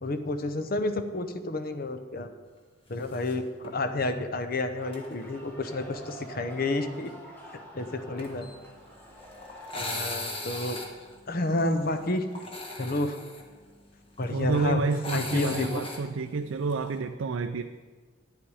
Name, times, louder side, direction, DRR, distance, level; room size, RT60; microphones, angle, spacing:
voice 1, 0.0-2.3 2.9-7.1 7.5-8.5 9.7-10.8 11.3-12.3 12.8-13.2 14.2-14.8 15.1-15.7, left 2 dB, 45° left, 9 dB, 0.7 m, -30 dB
sound 1, 3.0-3.3 3.6-3.7 4.9-5.1 8.2-17.0, left 2 dB, 25° left, 1.5 m, -39 dB
sound 2, 4.8-10.3, right 1 dB, 10° left, 1.6 m, -47 dB
voice 2, 14.3-17.6, right 4 dB, 80° right, 7 dB, 0.4 m, -29 dB
10.0 x 10.0 x 4.9 m, 1.4 s
head